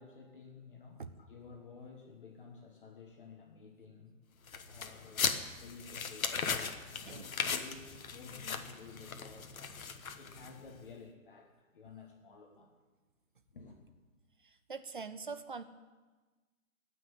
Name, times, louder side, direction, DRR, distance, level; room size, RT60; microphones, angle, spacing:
voice 1, 0.0-4.2 4.6-9.5 10.1-12.7 13.5-13.8, left 5 dB, 40° left, 1 dB, 1.5 m, -53 dB
sound 1, 4.5-10.7, left 6 dB, 75° left, 1.3 m, -38 dB
voice 2, 14.7-15.6, right 5 dB, 40° right, 11 dB, 0.6 m, -42 dB
17.0 x 6.2 x 9.6 m, 1.3 s
hypercardioid pair, 170°, 42 cm